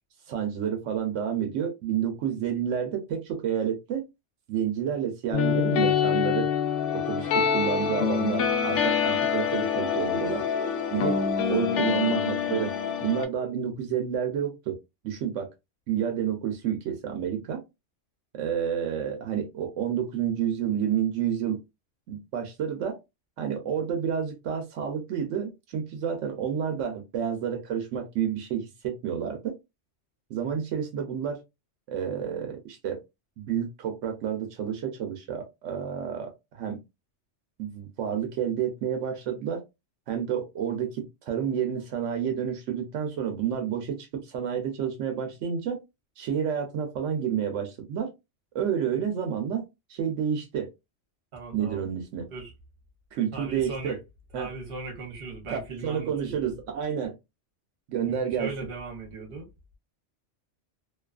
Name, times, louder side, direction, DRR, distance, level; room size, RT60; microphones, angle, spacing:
voice 1, 0.3-4.0 4.5-6.5 6.9-10.5 10.9-11.2 11.5-12.7 13.0-14.8 15.0-15.5 15.9-17.6 18.3-21.6 22.1-23.0 23.4-29.5 30.3-31.4 31.9-33.0 33.4-36.8 37.6-39.6 40.1-45.8 46.2-48.1 48.5-49.6 49.9-50.7 51.5-52.3 53.1-54.0 54.3-54.5 55.5-57.2 57.9-58.5, right 8 dB, 85° right, 1.0 m, -29 dB
sound 1, 5.3-13.3, left 7 dB, 75° left, 0.9 m, -25 dB
voice 2, 51.3-51.8 52.3-52.5 53.3-54.0 54.3-56.4 58.1-59.5, right 3 dB, 55° right, 1.1 m, -38 dB
2.6 x 2.3 x 2.3 m
omnidirectional pair, 1.2 m